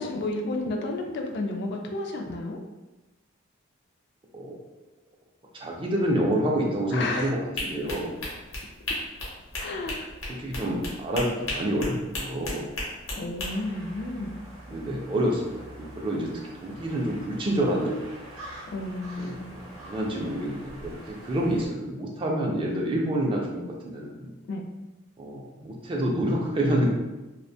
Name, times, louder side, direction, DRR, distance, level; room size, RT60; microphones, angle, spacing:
voice 1, 0.0-2.6 6.9-7.3 9.6-10.1 13.2-14.3 18.7-19.5 20.2-20.3 24.5-24.6, left 2 dB, 55° left, 3 dB, 0.3 m, -31 dB
voice 2, 5.5-7.4 7.7-8.2 10.3-13.3 14.7-16.3 16.6-18.1 19.2-24.3 25.2-26.9, right 1 dB, 25° right, -1 dB, 0.4 m, -28 dB
sound 1, 7.6-13.5, left 1 dB, 85° left, 0.8 m, -34 dB
sound 2, 13.4-21.7, right 1 dB, 85° right, 0.7 m, -45 dB
2.4 x 2.1 x 2.6 m, 1.1 s
head